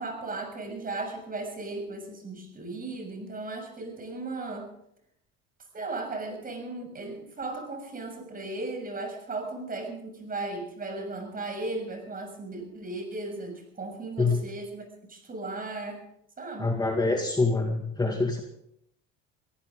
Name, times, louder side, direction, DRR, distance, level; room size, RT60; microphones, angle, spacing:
voice 1, 0.0-4.7 5.7-14.8 15.1-16.0 16.4-16.7, right 2 dB, 30° right, 4 dB, 6.7 m, -36 dB
voice 2, 16.6-18.4, left 3 dB, 15° left, 2 dB, 2.1 m, -25 dB
23.0 x 15.0 x 3.8 m, 0.73 s
supercardioid pair, 105°, 31 cm